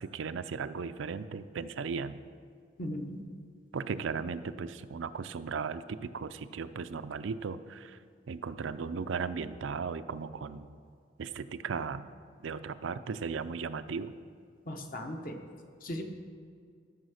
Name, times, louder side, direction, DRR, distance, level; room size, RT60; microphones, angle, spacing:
voice 1, 0.0-2.2 3.7-8.0 8.3-10.7 11.2-12.1 12.4-14.2, right 5 dB, 85° right, 12 dB, 0.4 m, -36 dB
voice 2, 2.8-3.2 14.7-15.4 15.8-16.0, left 1 dB, 45° left, 4 dB, 1.0 m, -37 dB
13.5 x 5.5 x 6.4 m, 2.2 s
head